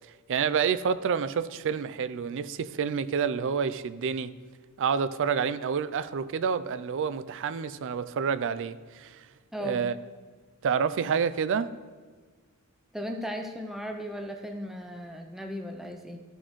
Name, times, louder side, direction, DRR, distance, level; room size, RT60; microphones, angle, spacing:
voice 1, 0.3-4.3 4.8-9.2 9.6-9.9 10.6-11.7, right 6 dB, 60° right, 0.4 m, -28 dB
voice 2, 9.5-9.9 12.9-16.2, equal, ahead, 0.5 m, -36 dB
13.5 x 6.2 x 3.1 m
head